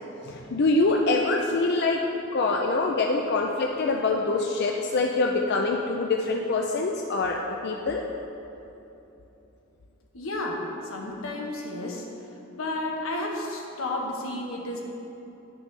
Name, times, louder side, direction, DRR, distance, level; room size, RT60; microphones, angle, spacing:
voice 1, 0.2-2.0 2.3-8.0, left 3 dB, 55° left, 1 dB, 0.4 m, -25 dB
voice 2, 10.1-12.0 12.5-14.8, left 2 dB, 85° left, 0 dB, 1.2 m, -32 dB
11.0 x 6.1 x 3.3 m, 3.0 s
head